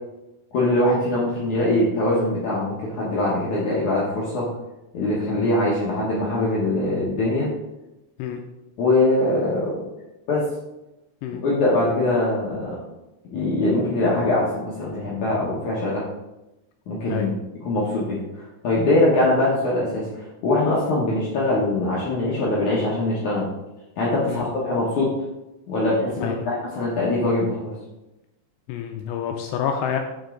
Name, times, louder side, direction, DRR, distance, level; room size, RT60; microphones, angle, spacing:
voice 1, 0.5-4.5 4.9-7.5 8.8-9.7 10.3-10.4 11.4-12.8 13.3-16.0 16.9-23.4 24.0-25.1 25.7-27.7, left 2 dB, 65° left, -7 dB, 2.0 m, -22 dB
voice 2, 28.7-30.0, left 8 dB, 85° left, 4 dB, 2.5 m, -27 dB
7.0 x 5.4 x 3.8 m, 0.96 s
omnidirectional pair, 5.1 m